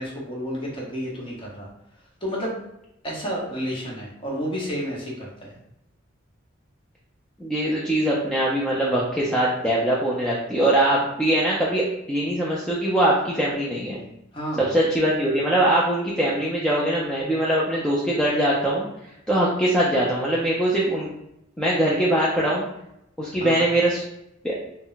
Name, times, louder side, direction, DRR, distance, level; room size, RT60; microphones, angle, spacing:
voice 1, 0.0-1.7 2.2-2.5 3.0-5.5 14.3-14.9 23.4-23.6, equal, 25° left, -4 dB, 0.8 m, -31 dB
voice 2, 7.4-14.0 14.6-18.9 19.3-21.1 21.6-22.6 23.2-24.0 24.4-24.6, right 1 dB, 5° left, -6 dB, 0.4 m, -22 dB
2.1 x 2.1 x 3.8 m, 0.82 s
head